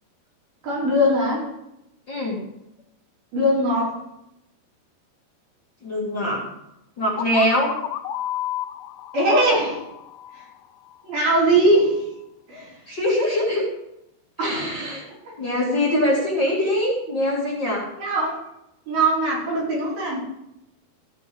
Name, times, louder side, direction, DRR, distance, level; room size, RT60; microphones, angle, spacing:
voice 1, 0.6-1.5 3.3-4.0 9.1-9.8 11.0-12.0 12.5-12.7 14.4-14.9 18.0-18.4 18.9-20.2, right 1 dB, 65° right, -6 dB, 6.7 m, -20 dB
voice 2, 2.1-2.4 5.8-6.4 7.0-7.7 12.9-13.6 14.4-15.0 15.4-17.9, left 1 dB, 35° left, -5 dB, 2.4 m, -23 dB
sound 1, 7.2-10.9, left 12 dB, 80° left, 2.7 m, -32 dB
15.5 x 6.0 x 7.0 m, 0.87 s
omnidirectional pair, 4.6 m